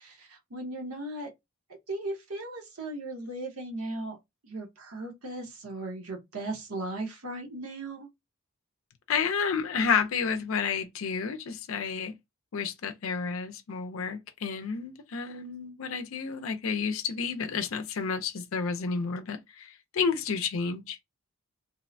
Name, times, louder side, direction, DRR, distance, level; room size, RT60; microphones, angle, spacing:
voice 1, 0.0-1.3 1.9-4.2 4.4-8.1, right 2 dB, 75° right, 0.8 m, -37 dB
voice 2, 9.1-12.1 12.5-21.0, left 5 dB, 65° left, 0.5 m, -30 dB
2.6 x 2.1 x 2.5 m
head